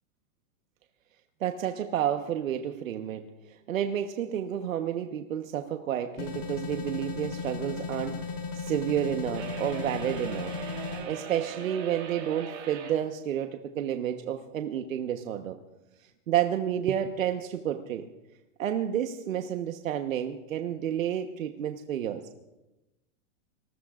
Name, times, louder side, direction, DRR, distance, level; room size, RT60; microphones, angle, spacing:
voice 1, 1.4-3.2 3.7-8.2 8.5-10.5 11.1-15.6 16.3-18.0 18.6-22.2, right 10 dB, 90° right, 6 dB, 1.3 m, -30 dB
sound 1, 6.2-11.0, left 4 dB, 45° left, 4.3 m, -36 dB
sound 2, 9.3-13.0, right 7 dB, 60° right, 6.3 m, -40 dB
27.0 x 20.0 x 2.5 m, 0.99 s
supercardioid pair, 175°, 39 cm